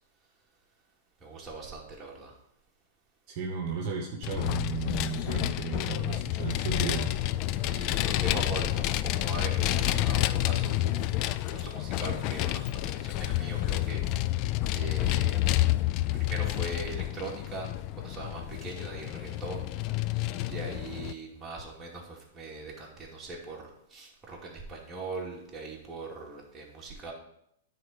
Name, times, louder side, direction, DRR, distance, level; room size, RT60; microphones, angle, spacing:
voice 1, 1.2-2.4 6.7-6.8 7.6-11.1 11.5-15.4 16.1-20.2 20.5-27.1, right 3 dB, 15° right, -3 dB, 2.5 m, -41 dB
voice 2, 3.3-7.2, right 6 dB, 45° right, 1 dB, 1.1 m, -34 dB
Vehicle, 4.2-21.1, left 15 dB, 45° left, 0.3 m, -29 dB
9.4 x 4.1 x 5.1 m, 0.75 s
hypercardioid pair, 110°, 0 cm